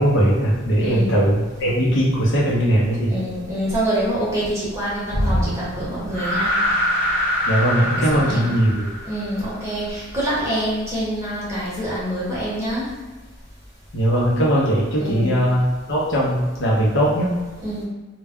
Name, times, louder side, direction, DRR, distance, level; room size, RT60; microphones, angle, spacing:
voice 1, 0.0-3.2 7.4-8.8 13.9-17.3, equal, 60° left, -5 dB, 0.7 m, -19 dB
voice 2, 0.8-1.2 3.1-6.5 7.9-8.5 9.0-12.9 15.0-15.4 17.6-17.8, right 1 dB, 15° right, -8 dB, 0.9 m, -26 dB
sound 1, 5.1-9.5, equal, 10° left, 1.1 m, -23 dB
2.2 x 2.2 x 3.5 m, 1.3 s
head